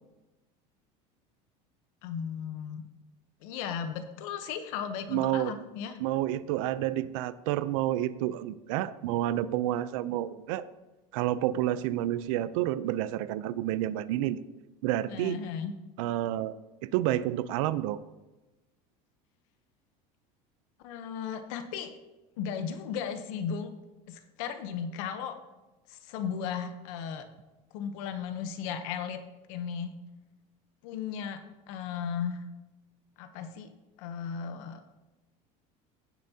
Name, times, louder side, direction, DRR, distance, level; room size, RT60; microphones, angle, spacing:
voice 1, 2.0-2.8 3.4-6.0 15.1-15.7 20.8-21.9 22.4-23.7 24.1-25.4 25.9-27.3 27.7-29.2 29.5-30.0 30.8-31.4 31.7-32.4 33.2-33.7 34.0-34.8, left 7 dB, 75° left, 8 dB, 0.9 m, -35 dB
voice 2, 5.1-5.5 6.0-10.6 11.1-14.4 14.8-15.4 16.0-16.6 16.9-18.0, right 13 dB, 80° right, 15 dB, 0.5 m, -29 dB
16.0 x 7.1 x 2.8 m, 1.1 s
cardioid pair, 150°, 17 cm